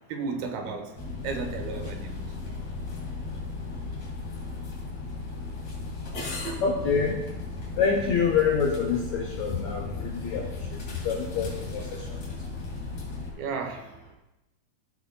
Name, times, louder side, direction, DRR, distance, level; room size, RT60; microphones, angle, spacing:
voice 1, 0.1-0.9 1.2-2.3 13.4-13.9, right 4 dB, 85° right, 5 dB, 2.9 m, -33 dB
sound 1, 1.0-13.3, left 3 dB, 45° left, 3.1 m, -36 dB
voice 2, 6.6-7.2 7.8-10.4 11.0-11.8, left 6 dB, 75° left, 1 dB, 1.6 m, -26 dB
15.0 x 8.4 x 2.3 m, 0.98 s
omnidirectional pair, 4.2 m